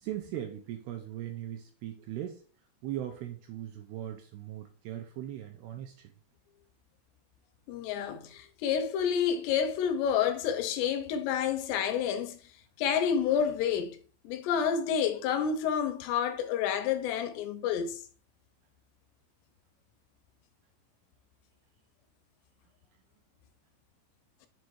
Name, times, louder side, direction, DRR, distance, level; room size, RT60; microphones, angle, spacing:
voice 1, 0.0-2.4 2.8-6.1, right 12 dB, 80° right, 2.3 m, -39 dB
voice 2, 7.7-12.4 12.8-14.0 14.2-18.0, left 8 dB, 80° left, 2.7 m, -29 dB
6.6 x 3.6 x 4.4 m
omnidirectional pair, 5.1 m